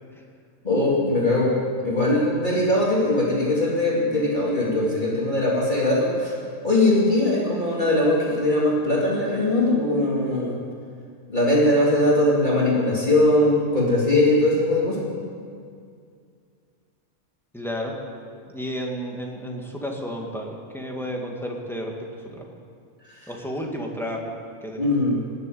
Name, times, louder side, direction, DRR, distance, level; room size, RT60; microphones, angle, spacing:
voice 1, 0.6-1.6 1.8-6.4 6.6-10.6 11.3-15.0 23.2-23.3 24.8-25.2, left 1 dB, 35° left, -5 dB, 2.7 m, -21 dB
voice 2, 17.5-18.0 18.5-22.5 23.3-24.3 24.6-24.9, equal, ahead, -1 dB, 1.9 m, -32 dB
19.0 x 7.8 x 9.2 m, 2.2 s
omnidirectional pair, 1.5 m